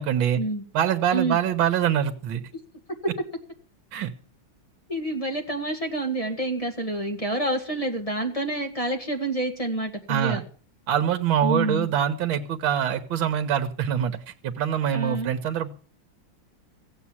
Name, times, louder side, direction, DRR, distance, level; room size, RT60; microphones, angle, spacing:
voice 1, 0.0-0.4 0.7-2.4 3.9-4.1 10.1-10.4 10.9-14.2 14.4-15.7, right 9 dB, 70° right, 7 dB, 1.9 m, -24 dB
voice 2, 4.9-10.4 11.4-11.9 14.9-15.3, right 2 dB, 20° left, 4 dB, 1.8 m, -28 dB
15.5 x 8.2 x 7.2 m, 0.40 s
omnidirectional pair, 2.2 m